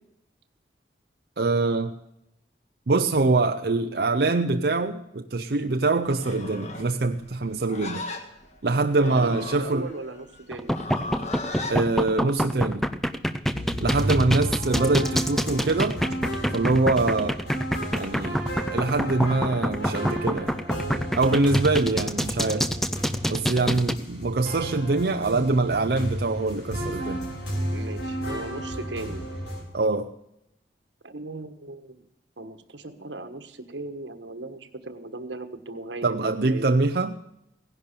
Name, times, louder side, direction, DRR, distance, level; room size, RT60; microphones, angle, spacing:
voice 1, 1.4-1.9 2.9-8.0 8.6-9.9 11.7-12.8 13.8-16.0 16.5-17.4 17.9-18.4 18.7-20.6 21.1-22.7 23.3-27.3 29.7-30.1 36.0-37.2, right 3 dB, 60° right, 6 dB, 0.6 m, -24 dB
Livestock farm animals working animals, 6.1-11.8, left 2 dB, 40° left, 1.7 m, -37 dB
voice 2, 9.1-10.7 27.7-29.2 31.0-32.0 32.4-36.6, right 2 dB, 85° right, 9 dB, 1.5 m, -37 dB
sound 1, 10.5-23.9, equal, ahead, 0.6 m, -26 dB
sound 2, 13.5-29.6, equal, 75° left, 4.5 m, -33 dB
16.5 x 11.0 x 6.8 m, 0.84 s
head